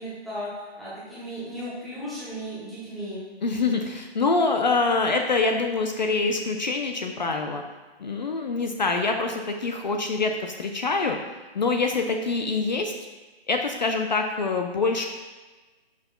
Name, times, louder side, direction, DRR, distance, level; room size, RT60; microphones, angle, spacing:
voice 1, 0.0-3.2, equal, ahead, -10 dB, 0.7 m, -35 dB
voice 2, 3.4-7.6 8.0-11.2 11.5-12.9 13.5-15.1, left 3 dB, 45° left, 4 dB, 0.5 m, -25 dB
9.5 x 6.0 x 2.3 m, 1.2 s
figure-of-eight pair, 150°, 32 cm